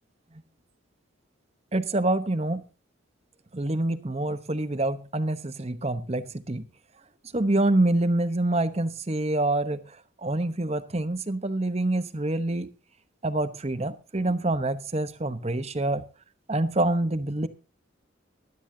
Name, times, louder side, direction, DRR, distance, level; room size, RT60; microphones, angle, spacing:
voice 1, 1.7-2.6 3.5-6.6 7.3-9.8 10.2-12.7 13.2-16.0 16.5-17.5, right 2 dB, 30° right, 12 dB, 1.0 m, -26 dB
16.0 x 12.5 x 2.8 m, 0.33 s
head